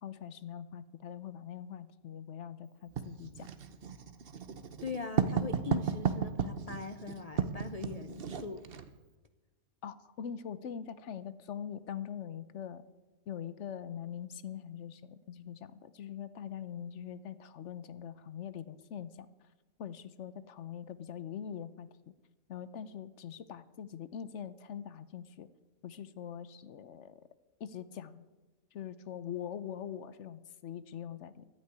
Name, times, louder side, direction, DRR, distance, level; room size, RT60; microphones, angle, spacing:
voice 1, 0.0-3.5 9.8-12.8 13.3-19.3 19.8-22.1 22.5-25.5 25.8-27.2 27.6-28.2 28.7-31.4, left 8 dB, 60° left, 15 dB, 1.0 m, -43 dB
Writing, 3.0-8.9, right 7 dB, 45° right, 1.0 m, -34 dB
voice 2, 4.8-8.6, left 5 dB, 90° left, 10 dB, 0.3 m, -41 dB
12.0 x 9.8 x 9.5 m, 1.2 s
omnidirectional pair, 1.5 m